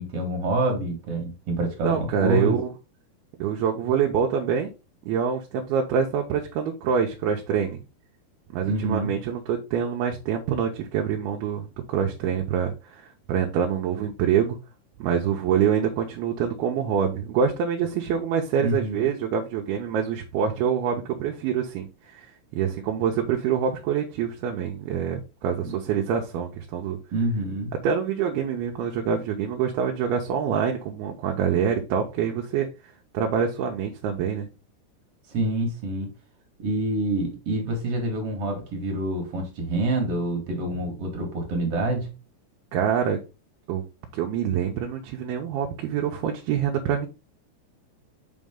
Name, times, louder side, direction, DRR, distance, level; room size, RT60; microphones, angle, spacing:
voice 1, 0.0-2.6 8.6-9.2 18.6-19.1 25.6-25.7 27.1-27.8 35.3-36.1 36.6-42.1, right 1 dB, 50° right, 1 dB, 2.0 m, -27 dB
voice 2, 1.8-2.7 3.4-4.7 5.0-7.8 8.5-13.0 13.3-14.6 15.0-27.0 27.8-32.7 33.1-34.5 42.7-43.2 43.7-43.8 44.1-47.1, right 7 dB, 75° right, 2 dB, 2.5 m, -25 dB
6.1 x 5.2 x 3.7 m, 0.30 s
omnidirectional pair, 4.9 m